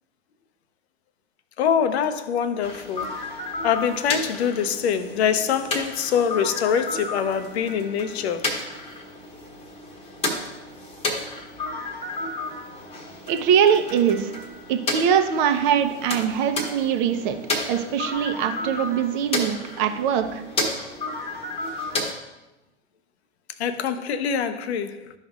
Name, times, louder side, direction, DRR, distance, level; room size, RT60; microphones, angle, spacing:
voice 1, 1.6-3.2 3.6-8.5 23.6-25.1, left 7 dB, 60° left, 0.8 m, -24 dB
sound 1, 2.6-22.1, left 2 dB, 15° left, 1.2 m, -32 dB
voice 2, 13.3-14.3 14.7-17.4 17.7-20.4, right 8 dB, 40° right, 0.9 m, -22 dB
12.0 x 5.4 x 2.5 m
hypercardioid pair, 110°, 36 cm